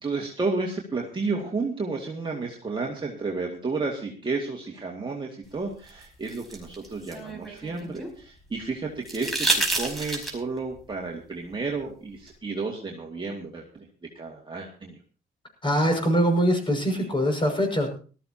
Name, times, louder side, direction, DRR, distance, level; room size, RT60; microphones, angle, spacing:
voice 1, 0.0-13.9 14.2-15.0, right 3 dB, 25° right, -1 dB, 2.2 m, -32 dB
sound 1, 5.9-8.1 9.0-10.6 12.3-12.4, right 2 dB, ahead, 5.0 m, -29 dB
voice 2, 15.6-17.9, equal, 25° left, 4 dB, 6.0 m, -23 dB
19.0 x 13.5 x 2.9 m, 0.39 s
cardioid pair, 90°, 20 cm